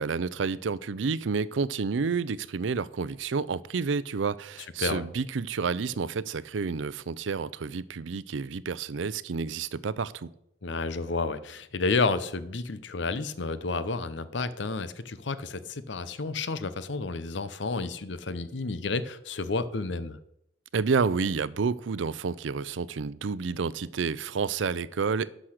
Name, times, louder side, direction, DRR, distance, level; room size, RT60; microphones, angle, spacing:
voice 1, 0.0-10.3 20.7-25.3, right 5 dB, 85° right, 0.5 m, -30 dB
voice 2, 10.6-20.2, left 3 dB, 70° left, 0.7 m, -31 dB
11.5 x 6.2 x 6.5 m
head